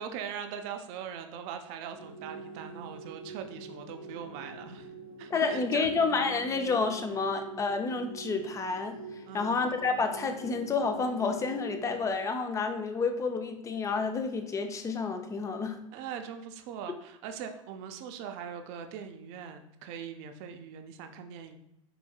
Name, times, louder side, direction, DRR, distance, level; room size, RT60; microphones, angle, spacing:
voice 1, 0.0-4.9 5.2-5.9 9.2-9.6 15.9-21.6, right 7 dB, 50° right, 6 dB, 0.5 m, -41 dB
sound 1, 1.9-12.1, right 3 dB, 85° left, 1.2 m, -45 dB
voice 2, 5.3-9.0 9.3-15.8, left 4 dB, 20° left, 6 dB, 0.4 m, -29 dB
4.8 x 3.4 x 2.3 m, 0.81 s
hypercardioid pair, 100°, 17 cm